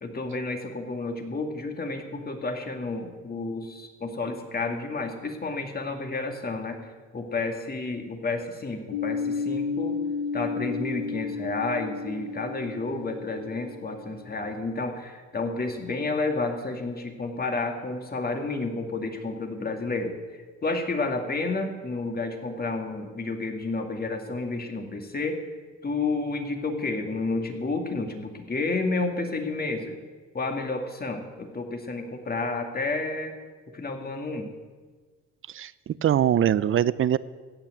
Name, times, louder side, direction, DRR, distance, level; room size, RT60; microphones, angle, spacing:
voice 1, 0.0-10.0 10.3-25.4 25.8-29.9 30.3-33.3 33.7-34.5, left 3 dB, 30° left, 4 dB, 2.0 m, -31 dB
sound 1, 8.9-14.4, left 5 dB, 80° left, 0.6 m, -32 dB
voice 2, 35.5-37.2, right 10 dB, 45° right, 19 dB, 0.5 m, -23 dB
15.5 x 5.9 x 8.3 m, 1.4 s
cardioid pair, 90°, 30 cm